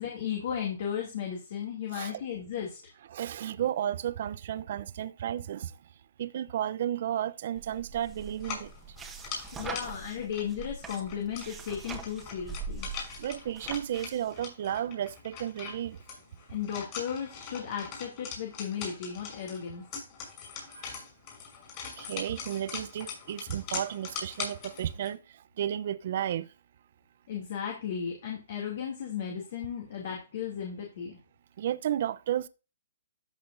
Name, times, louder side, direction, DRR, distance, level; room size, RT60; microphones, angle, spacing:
voice 1, 0.0-2.8 9.5-12.9 16.5-19.9 27.3-31.2, left 8 dB, 55° left, 2.7 m, -35 dB
voice 2, 3.1-5.7 6.2-9.0 13.2-16.0 20.7-21.0 22.0-26.5 31.6-32.5, right 10 dB, 55° right, 0.7 m, -33 dB
sound 1, 7.6-14.4, right 4 dB, 10° right, 1.5 m, -43 dB
sound 2, 8.4-25.1, left 6 dB, 35° left, 5.8 m, -42 dB
14.0 x 6.0 x 2.7 m
hypercardioid pair, 135°, 0 cm